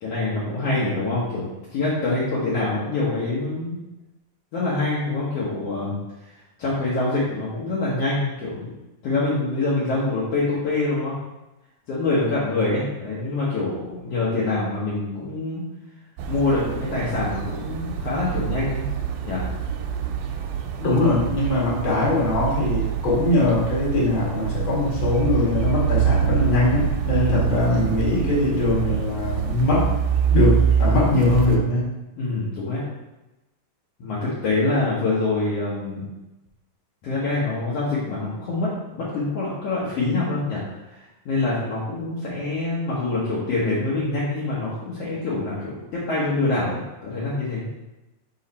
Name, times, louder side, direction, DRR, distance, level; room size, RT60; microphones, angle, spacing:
voice 1, 0.0-1.5 1.7-3.8 4.5-6.0 6.6-8.7 9.0-11.1 11.9-15.6 16.3-18.8 19.2-19.4 27.1-27.5 32.1-32.8 34.0-36.1 37.0-40.6 40.9-47.7, left 2 dB, 60° left, -8 dB, 1.6 m, -25 dB
sound 1, 16.2-31.6, right 8 dB, 85° right, 2.5 m, -25 dB
voice 2, 20.8-29.9 30.3-31.9, left 2 dB, 45° left, -5 dB, 2.0 m, -21 dB
5.3 x 4.8 x 4.2 m, 1.0 s
omnidirectional pair, 4.2 m